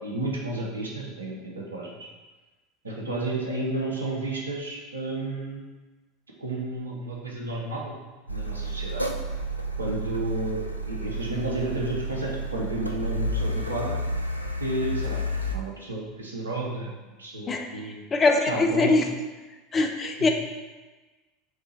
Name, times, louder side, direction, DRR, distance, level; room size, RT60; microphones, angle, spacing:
voice 1, 0.0-2.0 2.8-5.6 6.4-8.0 8.3-9.0 9.8-14.0 14.6-15.2 15.5-16.9 17.2-18.0 18.5-19.0 20.2-20.3, right 2 dB, 80° right, -2 dB, 0.8 m, -32 dB
Car, 8.3-15.6, equal, 90° left, 0.3 m, -31 dB
voice 2, 18.1-19.0 19.7-20.3, left 3 dB, 25° left, 4 dB, 0.5 m, -22 dB
4.7 x 3.3 x 3.1 m, 1.2 s
figure-of-eight pair, 80°, 0 cm